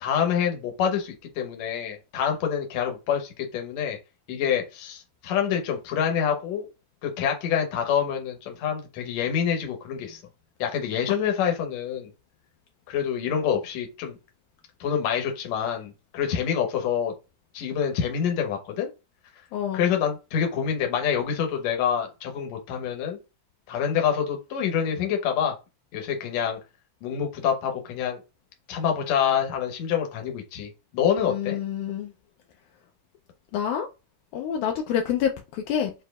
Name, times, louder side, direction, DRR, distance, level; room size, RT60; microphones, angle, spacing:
voice 1, 0.0-4.0 4.3-6.7 7.0-10.2 10.6-12.1 12.9-14.2 14.8-17.1 17.5-18.9 19.7-23.2 23.7-25.6 25.9-26.6 27.0-28.2 28.7-31.6, left 8 dB, 65° left, 1.9 m, -26 dB
voice 2, 19.5-19.9 31.3-32.1 33.5-33.9 34.3-35.9, left 9 dB, 80° left, 1.8 m, -27 dB
6.7 x 2.8 x 2.3 m
omnidirectional pair, 4.0 m